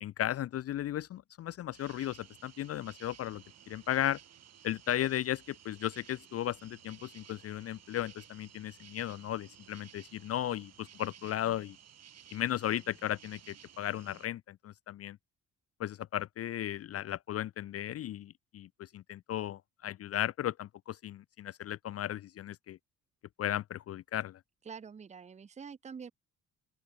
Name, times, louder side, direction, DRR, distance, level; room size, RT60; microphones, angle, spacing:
voice 1, 0.0-4.2 4.6-11.8 12.3-15.2 15.8-22.8 23.4-24.4, left 12 dB, 55° left, 0.5 m, -35 dB
sound 1, 1.7-14.3, right 9 dB, 60° right, 2.6 m, -56 dB
voice 2, 24.6-26.1, right 6 dB, 25° right, 0.6 m, -46 dB
open air
cardioid pair, 90°, 30 cm